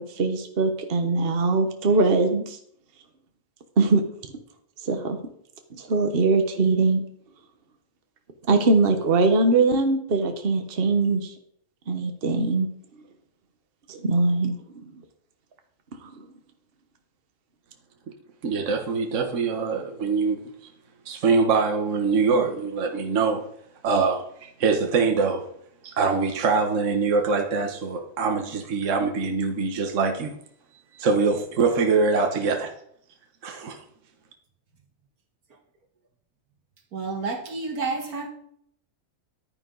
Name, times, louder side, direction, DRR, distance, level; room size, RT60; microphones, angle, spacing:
voice 1, 0.0-2.6 3.8-4.0 4.8-5.2 5.7-7.0 8.5-11.3 11.9-12.7 13.9-14.5, right 3 dB, 45° right, 1.3 m, -21 dB
voice 2, 18.4-20.4 21.0-23.4 23.8-25.4 25.8-30.4 30.9-32.7 33.4-33.8, right 4 dB, 60° right, 1.5 m, -23 dB
voice 3, 36.9-38.3, right 4 dB, 80° right, 2.1 m, -30 dB
11.5 x 9.5 x 3.9 m
omnidirectional pair, 1.5 m